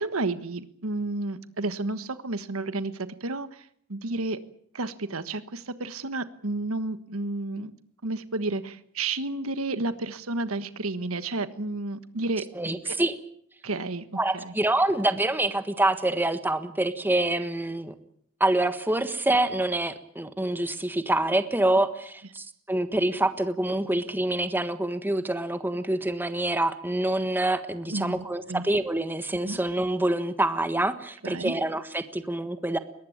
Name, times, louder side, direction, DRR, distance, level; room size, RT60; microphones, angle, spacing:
voice 1, 0.0-4.4 4.7-7.7 8.0-12.4 12.8-12.9 13.6-14.0 14.3-14.5 27.9-28.6 29.4-29.6 31.2-31.5, right 2 dB, 85° right, 12 dB, 1.4 m, -31 dB
voice 2, 12.5-13.2 14.1-17.9 18.4-32.8, right 1 dB, 10° right, 10 dB, 1.4 m, -26 dB
22.0 x 19.0 x 8.7 m, 0.65 s
head